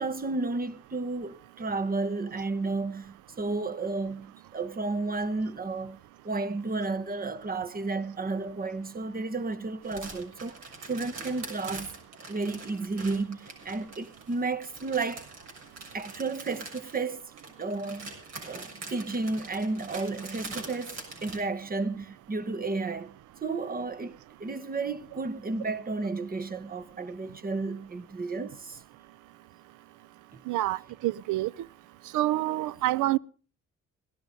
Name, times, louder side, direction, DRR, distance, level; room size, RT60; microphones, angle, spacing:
voice 1, 0.0-6.0 6.2-10.6 10.8-11.9 12.3-15.3 15.9-17.2 17.6-18.1 18.4-20.9 21.2-23.1 23.4-28.8, right 3 dB, 30° right, 1.3 m, -32 dB
sound 1, 9.8-21.4, right 3 dB, 60° right, 6.7 m, -44 dB
voice 2, 30.5-31.5 32.1-33.2, right 16 dB, 85° right, 0.6 m, -27 dB
17.5 x 12.0 x 5.3 m
cardioid pair, 90°, 30 cm